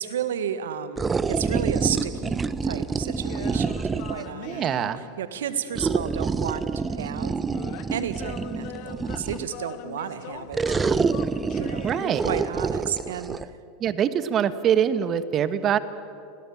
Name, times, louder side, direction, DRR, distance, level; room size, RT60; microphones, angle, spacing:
voice 1, 0.0-4.7 5.2-7.4 7.9-11.1 11.6-11.9 12.2-13.4, right 9 dB, 80° right, 11 dB, 1.7 m, -32 dB
sound 1, 1.0-4.3 5.7-9.6 10.5-13.5, right 5 dB, 20° right, 0.9 m, -27 dB
sound 2, 3.2-5.6 7.5-12.8, left 14 dB, 55° left, 1.0 m, -42 dB
voice 2, 4.4-5.0 11.8-12.2 13.8-15.8, right 9 dB, 40° right, 13 dB, 1.5 m, -24 dB
29.5 x 21.5 x 7.3 m, 2.7 s
hypercardioid pair, 95°, 0 cm